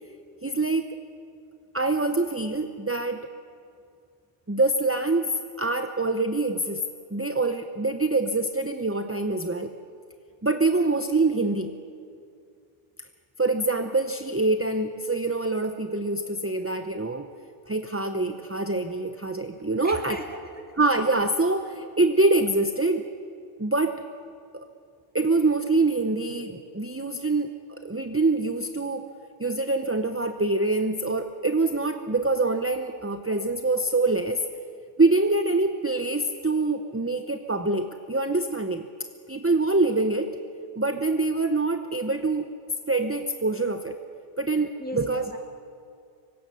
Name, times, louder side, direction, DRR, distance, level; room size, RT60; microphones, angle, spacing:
voice 1, 0.4-0.9 1.7-3.3 4.5-6.8 7.1-9.7 10.4-11.7 13.4-17.3 17.7-20.2 20.8-23.0 23.6-24.0 25.1-29.1 29.4-34.4 35.0-38.9 39.3-40.3 40.8-42.5 42.9-44.0 44.4-45.3, right 2 dB, 15° right, 7 dB, 0.6 m, -25 dB
voice 2, 19.8-20.4 44.8-45.4, left 1 dB, 10° left, 1 dB, 2.4 m, -37 dB
24.5 x 24.5 x 6.8 m, 2.4 s
omnidirectional pair, 1.2 m